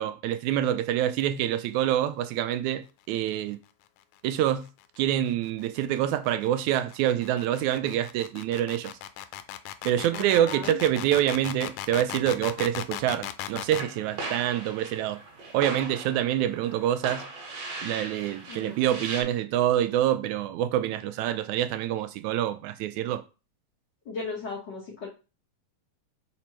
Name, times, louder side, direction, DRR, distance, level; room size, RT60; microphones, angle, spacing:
voice 1, 0.0-3.6 4.2-4.7 5.0-8.9 9.9-15.2 15.5-17.3 17.8-23.2, right 11 dB, 80° right, 1.9 m, -26 dB
sound 1, 4.7-13.9, left 12 dB, 85° left, 2.0 m, -38 dB
voice 2, 10.1-10.8 18.5-19.0 24.0-25.1, left 4 dB, 50° left, 1.4 m, -37 dB
sound 2, 13.8-19.2, right 3 dB, 60° right, 2.4 m, -39 dB
5.1 x 4.3 x 4.4 m
omnidirectional pair, 3.4 m